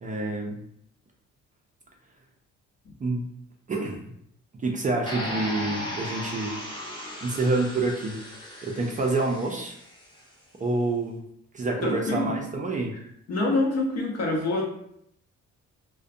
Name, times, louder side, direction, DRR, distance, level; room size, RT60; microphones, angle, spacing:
voice 1, 0.0-0.6 3.0-3.2 3.7-4.0 4.6-6.5 7.2-8.2 8.6-9.8 10.6-11.2 11.5-12.9, right 2 dB, 25° right, 0 dB, 0.4 m, -27 dB
sound 1, 5.1-10.1, equal, 15° left, 0.7 m, -36 dB
voice 2, 11.8-12.3 13.3-14.7, left 2 dB, 55° left, 0 dB, 0.7 m, -26 dB
2.5 x 2.1 x 2.5 m, 0.73 s
cardioid pair, 90°, 30 cm